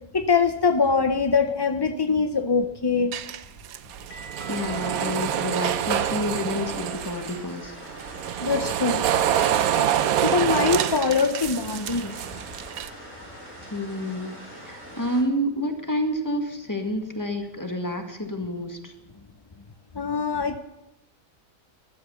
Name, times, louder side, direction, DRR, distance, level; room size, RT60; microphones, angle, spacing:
voice 1, 0.1-3.2 8.4-9.0 9.8-12.1 19.9-20.6, left 5 dB, 40° left, 7 dB, 0.3 m, -23 dB
sound 1, 3.0-7.8, right 1 dB, 80° left, 2.3 m, -47 dB
metal shop hoist chains thick rattle pull on track, 3.1-7.4 7.9-12.9, right 10 dB, 70° right, 1.1 m, -26 dB
voice 2, 4.5-7.8 13.7-18.9, equal, 10° left, 4 dB, 1.8 m, -29 dB
sound 2, 6.4-15.2, equal, 40° right, 5.7 m, -43 dB
14.5 x 12.5 x 7.0 m, 0.90 s
omnidirectional pair, 1.7 m